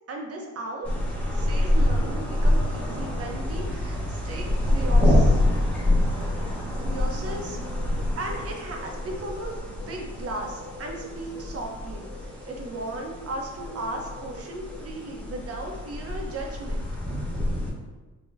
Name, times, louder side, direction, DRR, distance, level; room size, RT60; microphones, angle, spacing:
voice 1, 0.1-0.9 1.3-5.4 6.2-6.4 6.8-7.6 8.2-16.9, right 2 dB, 50° right, 1 dB, 0.8 m, -36 dB
sound 1, 0.8-17.7, left 1 dB, 5° left, 0.9 m, -26 dB
4.0 x 2.9 x 2.5 m, 1.2 s
cardioid pair, 90°, 30 cm